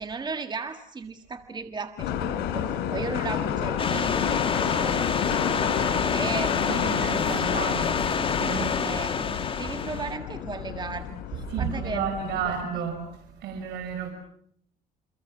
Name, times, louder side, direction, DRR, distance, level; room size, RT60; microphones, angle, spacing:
voice 1, 0.0-7.8 8.8-12.1 12.4-12.5, right 4 dB, 25° right, 1.8 m, -37 dB
sound 1, 2.0-12.6, left 9 dB, 85° left, 3.4 m, -30 dB
sound 2, 3.8-10.2, left 5 dB, 30° left, 2.1 m, -27 dB
voice 2, 6.7-7.9 8.4-8.7 11.5-13.0 13.4-14.1, right 7 dB, 75° right, 5.4 m, -31 dB
29.5 x 25.0 x 7.3 m
cardioid pair, 110°, 17 cm